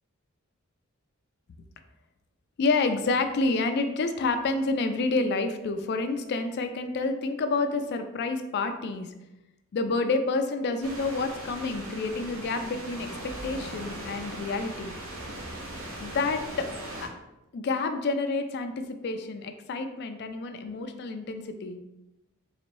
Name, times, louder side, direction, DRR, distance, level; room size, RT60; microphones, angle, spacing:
voice 1, 2.6-9.1 9.7-13.1 13.4-14.9 16.0-16.7 17.0-17.1 17.5-21.8, left 3 dB, 50° left, 7 dB, 0.3 m, -29 dB
sound 1, 10.8-17.1, right 1 dB, 70° right, 0.8 m, -39 dB
3.9 x 2.6 x 3.0 m, 0.95 s
head